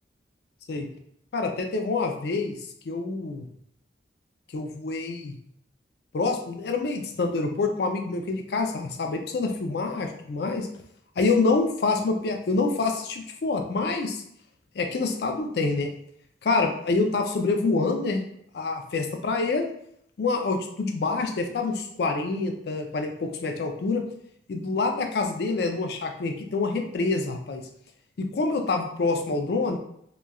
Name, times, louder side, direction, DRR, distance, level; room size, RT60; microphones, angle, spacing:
voice 1, 1.3-2.6 2.9-3.5 4.5-5.4 6.1-10.7 11.2-14.2 14.8-15.9 16.4-18.3 18.5-19.7 20.2-24.0 24.5-27.6 28.2-29.8, left 3 dB, 65° left, 4 dB, 0.4 m, -26 dB
2.9 x 2.3 x 2.2 m, 0.70 s
head